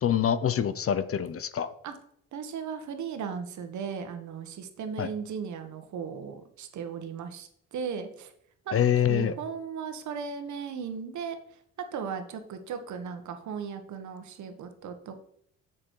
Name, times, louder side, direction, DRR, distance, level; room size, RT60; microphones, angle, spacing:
voice 1, 0.0-1.7 5.0-5.1 8.7-9.3, left 9 dB, 50° left, 14 dB, 0.8 m, -25 dB
voice 2, 2.3-7.5 7.7-8.3 8.6-8.8 9.1-11.4 11.9-15.2, right 6 dB, 70° right, 8 dB, 1.4 m, -36 dB
7.5 x 6.6 x 4.7 m, 0.68 s
cardioid pair, 90°, 30 cm